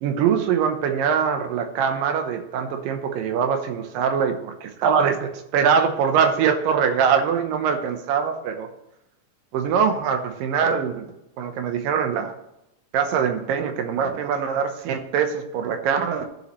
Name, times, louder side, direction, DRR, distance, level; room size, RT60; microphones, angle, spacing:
voice 1, 0.0-8.7 9.5-11.1 11.4-12.3 12.9-16.3, right 7 dB, 90° right, 6 dB, 2.6 m, -23 dB
14.5 x 7.1 x 3.1 m, 0.86 s
omnidirectional pair, 3.8 m